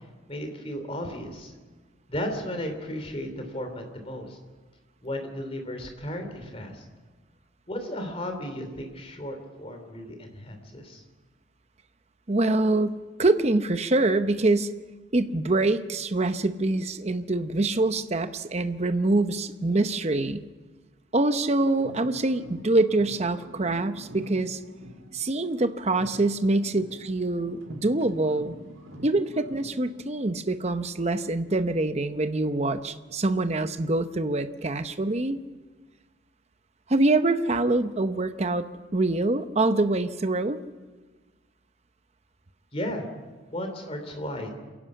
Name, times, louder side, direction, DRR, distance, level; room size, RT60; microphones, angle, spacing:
voice 1, 0.3-1.5 2.1-4.4 5.0-6.8 7.7-11.0 42.7-43.0 43.5-44.5, equal, 30° left, 5 dB, 3.0 m, -34 dB
voice 2, 12.3-14.7 15.1-20.5 21.1-24.6 25.1-28.6 29.0-35.4 36.9-38.7 38.9-40.6, right 2 dB, 35° right, 10 dB, 0.8 m, -25 dB
sound 1, 21.7-25.6 25.9-29.8, equal, 85° right, 2.9 m, -46 dB
27.5 x 11.5 x 8.4 m, 1.3 s
head